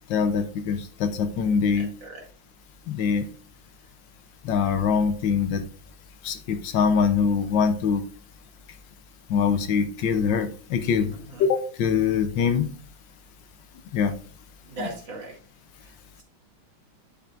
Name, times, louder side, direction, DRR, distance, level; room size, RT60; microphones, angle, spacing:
voice 1, 0.1-1.9 2.9-3.3 4.4-5.6 6.2-8.0 9.3-11.1 11.4-12.7 13.9-14.1 14.8-14.9, left 6 dB, 70° left, 9 dB, 1.4 m, -23 dB
voice 2, 1.7-2.2 11.1-11.4 14.7-15.3 15.8-15.9, right 2 dB, 60° right, -2 dB, 3.0 m, -38 dB
10.5 x 5.7 x 2.5 m, 0.41 s
omnidirectional pair, 2.2 m